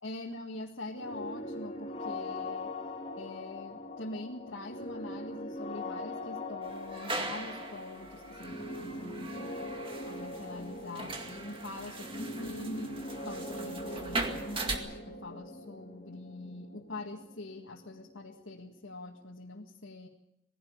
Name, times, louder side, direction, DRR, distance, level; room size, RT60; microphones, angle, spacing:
voice 1, 0.0-2.7 3.2-9.7 10.0-20.1, left 2 dB, 90° left, 0 dB, 1.9 m, -44 dB
sound 1, 0.9-18.6, left 1 dB, 35° left, 3.9 m, -41 dB
sound 2, 6.6-14.8, right 3 dB, 30° right, 2.1 m, -40 dB
20.5 x 16.0 x 8.7 m, 0.87 s
head